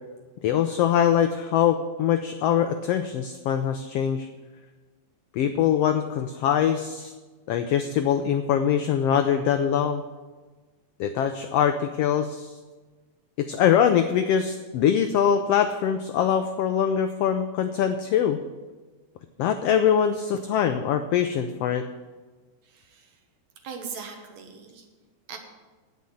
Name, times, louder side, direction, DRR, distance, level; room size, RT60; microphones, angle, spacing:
voice 1, 0.4-4.3 5.3-7.1 7.5-10.0 11.0-12.6 13.4-18.4 19.4-21.9, left 9 dB, 90° left, 8 dB, 1.3 m, -23 dB
voice 2, 22.6-23.2 23.6-24.8 25.3-25.4, right 6 dB, 65° right, 5 dB, 2.4 m, -40 dB
9.4 x 8.7 x 7.7 m, 1.3 s
omnidirectional pair, 3.5 m